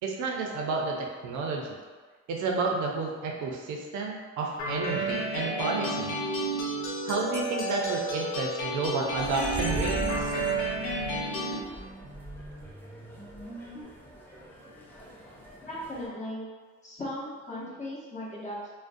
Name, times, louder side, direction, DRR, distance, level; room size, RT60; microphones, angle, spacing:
voice 1, 0.0-1.7 2.3-6.1 7.1-10.3, right 3 dB, 75° right, 0 dB, 0.5 m, -31 dB
sound 1, 4.6-11.6, right 2 dB, 75° left, 0.5 m, -31 dB
sound 2, 9.2-16.1, right 1 dB, 5° left, 0.4 m, -40 dB
sound 3, 9.2-13.8, right 1 dB, 20° right, 0.8 m, -47 dB
voice 2, 15.6-16.4 16.8-18.7, left 1 dB, 25° left, -7 dB, 0.8 m, -37 dB
2.4 x 2.1 x 2.5 m, 1.4 s
cardioid pair, 90°, 30 cm